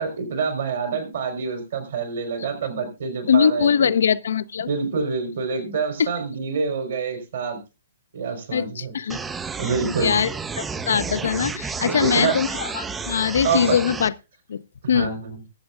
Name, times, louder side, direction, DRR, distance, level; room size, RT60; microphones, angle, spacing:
voice 1, 0.0-3.9 4.6-7.6 8.1-8.9 9.6-10.2 11.8-12.4 13.4-13.8 14.9-15.4, right 5 dB, 55° right, 3.9 m, -26 dB
voice 2, 3.3-4.7 6.0-6.1 8.5-9.2 10.0-10.3 10.6-14.1 14.5-14.6 14.9-15.1, left 7 dB, 60° left, 0.6 m, -21 dB
sound 1, 9.1-14.1, right 5 dB, 10° right, 0.6 m, -31 dB
21.0 x 7.9 x 2.4 m
figure-of-eight pair, 115°, 0 cm